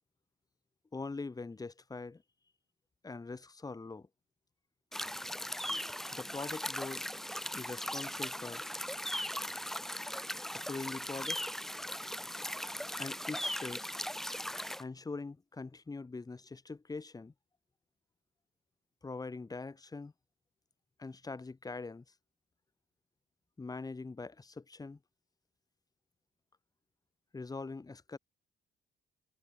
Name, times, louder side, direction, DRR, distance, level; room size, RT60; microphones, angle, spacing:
voice 1, 0.9-2.2 3.0-4.1 6.1-7.0 7.5-8.6 10.5-11.4 13.0-13.9 14.8-17.3 19.0-20.1 21.0-22.0 23.6-25.0 27.3-28.2, left 3 dB, 20° left, 0.9 m, -43 dB
sound 1, 4.9-14.8, equal, ahead, 0.4 m, -39 dB
cardioid pair, 90°, 20 cm